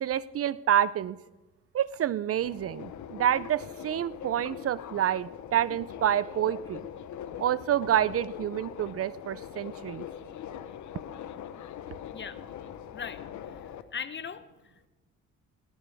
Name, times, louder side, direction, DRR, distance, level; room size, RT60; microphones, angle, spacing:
voice 1, 0.0-1.2 1.7-6.8 7.4-10.1, right 10 dB, 50° right, 19 dB, 0.5 m, -28 dB
Subway metro underground, 2.4-13.8, left 9 dB, 70° left, 1.0 m, -42 dB
voice 2, 12.1-12.4 12.9-14.9, left 7 dB, 40° left, 13 dB, 1.0 m, -40 dB
18.0 x 17.5 x 3.5 m, 1.2 s
cardioid pair, 90°, 30 cm